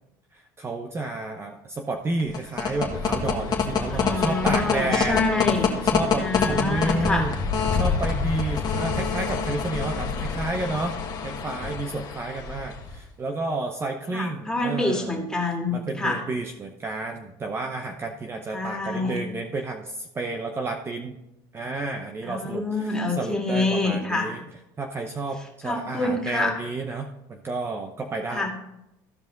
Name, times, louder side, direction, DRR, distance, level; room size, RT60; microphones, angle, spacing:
voice 1, 0.3-5.2 5.9-7.3 7.7-11.0 11.2-15.2 15.7-21.2 21.5-24.4 24.8-28.5, right 2 dB, 25° right, 4 dB, 0.8 m, -31 dB
sound 1, 2.2-13.0, left 5 dB, 40° left, 1.5 m, -26 dB
voice 2, 3.9-5.7 6.2-7.3 14.1-16.2 18.5-19.2 22.2-24.3 25.6-26.5 28.3-28.5, left 3 dB, 5° left, 0 dB, 2.3 m, -26 dB
14.5 x 5.1 x 3.9 m, 0.88 s
supercardioid pair, 100°, 10 cm